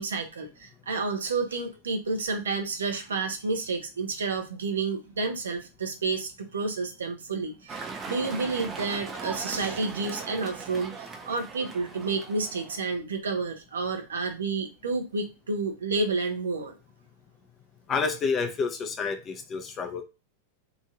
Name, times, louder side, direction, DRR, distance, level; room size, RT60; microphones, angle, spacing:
voice 1, 0.0-16.8, right 3 dB, 80° right, 5 dB, 0.7 m, -30 dB
sound 1, 7.7-12.8, right 4 dB, 25° right, 0.7 m, -39 dB
voice 2, 17.9-20.0, left 5 dB, 30° left, 6 dB, 0.7 m, -29 dB
2.9 x 2.6 x 2.5 m, 0.29 s
hypercardioid pair, 95°, 0 cm